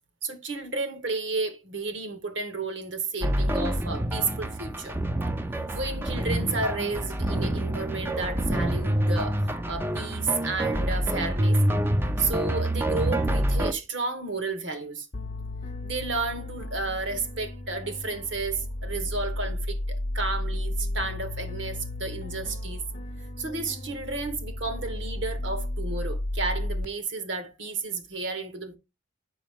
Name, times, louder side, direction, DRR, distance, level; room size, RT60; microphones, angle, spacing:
voice 1, 0.2-5.0 5.7-11.6 12.2-15.1 15.8-22.8 23.4-28.8, right 3 dB, 60° right, 1.3 m, -32 dB
sound 1, 3.2-13.7, right 1 dB, 10° right, 0.4 m, -27 dB
sound 2, 15.1-26.9, left 1 dB, 40° left, 0.6 m, -33 dB
6.2 x 5.4 x 3.5 m
head